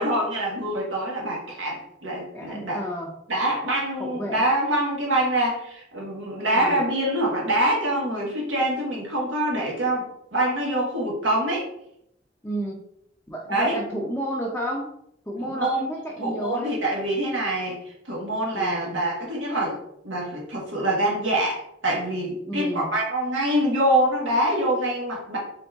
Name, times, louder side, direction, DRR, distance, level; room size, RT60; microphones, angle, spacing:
voice 1, 0.0-2.8 3.3-11.6 13.5-13.8 15.4-15.8 16.2-19.8 20.0-25.4, right 1 dB, 85° right, -3 dB, 1.3 m, -25 dB
voice 2, 2.3-3.1 4.0-4.4 6.5-6.8 12.4-12.8 13.3-14.9 15.3-16.8 18.5-19.0 22.5-22.9, equal, 10° left, -3 dB, 0.5 m, -31 dB
3.9 x 3.6 x 3.4 m, 0.75 s
head